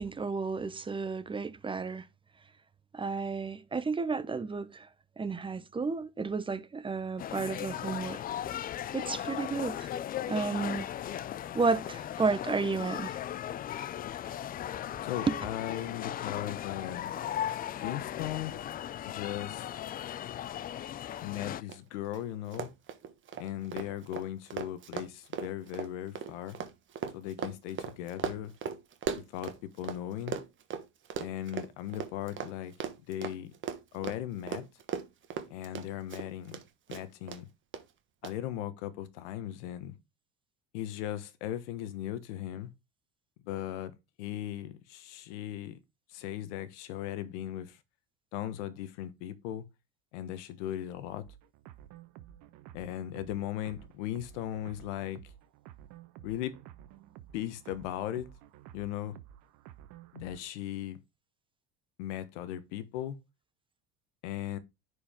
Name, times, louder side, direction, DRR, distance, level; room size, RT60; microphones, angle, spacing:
voice 1, 0.0-2.1 2.9-4.9 5.2-8.2 8.9-9.9 10.3-10.9 11.5-13.2 15.3-15.4, right 4 dB, 15° right, 0.7 m, -32 dB
sound 1, 7.2-21.6, left 11 dB, 30° left, 0.4 m, -37 dB
voice 2, 15.0-17.1 17.8-18.5 19.0-19.7 21.2-22.7 23.4-26.6 27.1-28.5 29.3-30.4 31.2-32.7 33.1-33.5 33.9-34.6 35.5-36.6 36.9-37.5 38.2-39.9 40.7-42.7 43.4-45.8 46.1-47.8 48.3-49.6 50.1-51.2 52.7-55.2 56.2-56.5 57.3-58.3 58.7-59.2 60.1-61.0 62.0-63.2 64.2-64.6, left 12 dB, 85° left, 1.3 m, -37 dB
Run, 21.7-21.8 22.0-22.2 22.5-30.0 30.3-36.6 36.9-37.4 37.7-37.8 38.2-38.3, right 7 dB, 35° right, 1.3 m, -38 dB
sound 2, 51.2-60.4, right 12 dB, 65° right, 1.2 m, -52 dB
10.0 x 5.0 x 3.6 m
supercardioid pair, 115°, 34 cm